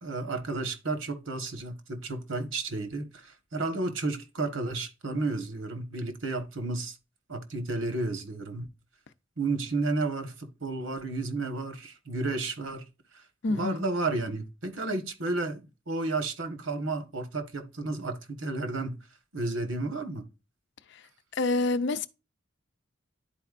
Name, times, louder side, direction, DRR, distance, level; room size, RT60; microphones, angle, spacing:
voice 1, 0.0-7.0 7.3-8.7 9.4-12.9 13.1-13.2 13.5-19.0 19.3-20.2, right 3 dB, 75° right, 1.3 m, -32 dB
voice 2, 13.4-13.8 20.9-21.0 21.3-22.1, left 3 dB, 60° left, 0.6 m, -27 dB
11.0 x 4.3 x 2.5 m
head